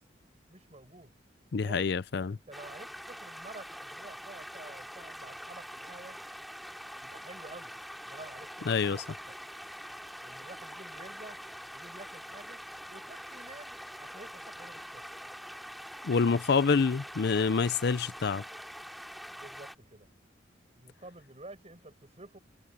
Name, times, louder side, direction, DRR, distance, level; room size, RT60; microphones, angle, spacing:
voice 1, 0.5-1.1 1.6-1.9 2.3-6.2 7.0-7.7 8.0-9.4 10.2-11.4 11.7-12.6 12.9-15.1 19.4-20.1 20.7-22.4, right 2 dB, 35° right, 7.4 m, -50 dB
voice 2, 1.5-2.4 8.7-9.0 16.0-18.4, left 5 dB, 65° left, 0.5 m, -27 dB
sound 1, 2.5-19.8, equal, ahead, 3.0 m, -45 dB
head